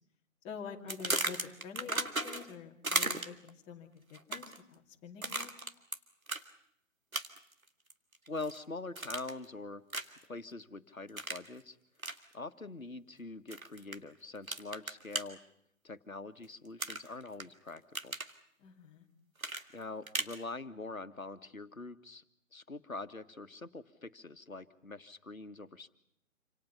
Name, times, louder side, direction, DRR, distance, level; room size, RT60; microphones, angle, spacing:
voice 1, 0.4-5.7 18.6-19.1, left 6 dB, 15° left, 1 dB, 2.6 m, -47 dB
sound 1, 0.9-2.5 2.8-3.5 4.1-4.6 5.2-6.0 6.3-6.4 7.1-7.5 7.9-8.6 9.0-9.4 9.9-10.2 11.2-11.5 12.0-12.2 13.5-14.0 14.5-15.2 16.8-17.4 17.8-18.3 19.4-20.4, right 2 dB, 90° right, 2.1 m, -35 dB
voice 2, 8.3-9.8 10.3-11.8 12.3-15.4 15.8-18.2 19.7-22.2 22.5-25.9, left 3 dB, 90° left, 10 dB, 1.7 m, -44 dB
28.0 x 26.5 x 5.8 m, 0.73 s
figure-of-eight pair, 140°, 40 cm